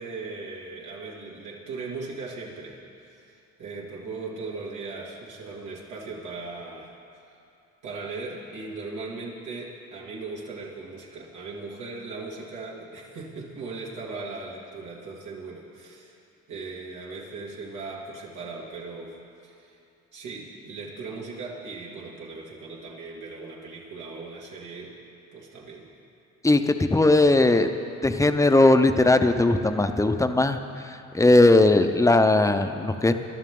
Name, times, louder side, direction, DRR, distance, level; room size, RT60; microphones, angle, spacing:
voice 1, 0.0-6.9 7.8-16.1 16.5-19.2 19.4-19.8 20.1-24.9 25.3-25.9, right 3 dB, 80° right, -5 dB, 2.6 m, -38 dB
voice 2, 26.4-27.7 28.0-30.6 31.1-33.1, left 2 dB, 10° left, 8 dB, 0.8 m, -18 dB
22.5 x 12.0 x 3.8 m, 2.6 s
cardioid pair, 90°, 30 cm